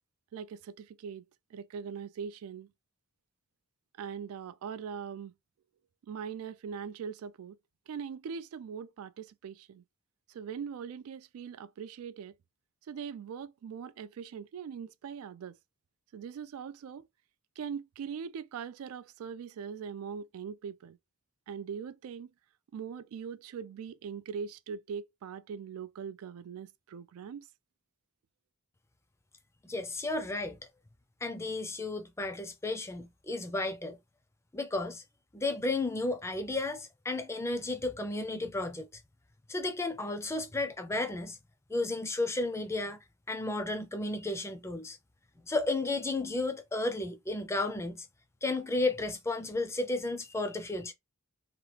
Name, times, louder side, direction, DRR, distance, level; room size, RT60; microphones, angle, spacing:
voice 1, 0.3-1.2 1.5-2.7 4.0-5.3 6.0-7.6 7.9-9.8 10.3-12.3 12.9-15.5 16.1-17.1 17.6-21.0 21.5-22.3 22.7-27.5, right 7 dB, 80° right, 0.3 m, -41 dB
voice 2, 29.6-30.6 31.2-34.0 34.5-35.0 35.3-38.9 39.5-41.4 41.7-43.0 43.3-45.0 45.4-48.1 48.4-50.9, left 2 dB, 10° left, 0.4 m, -33 dB
3.0 x 2.3 x 3.2 m
head